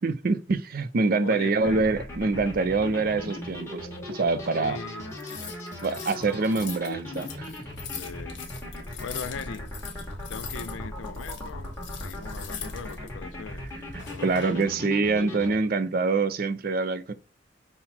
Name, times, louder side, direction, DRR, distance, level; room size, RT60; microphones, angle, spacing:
voice 1, 0.0-4.8 5.8-7.5 13.9-17.1, right 3 dB, 45° right, 0.4 m, -25 dB
voice 2, 1.2-1.9 4.5-5.6 7.9-9.7 10.3-13.7 14.1-14.6 15.6-15.7, left 5 dB, 85° left, 0.4 m, -40 dB
sound 1, 1.6-15.5, left 1 dB, 15° left, 1.3 m, -38 dB
sound 2, 5.2-10.8 11.0-13.1 13.9-14.7, left 8 dB, 60° left, 1.1 m, -41 dB
5.7 x 2.1 x 4.2 m
head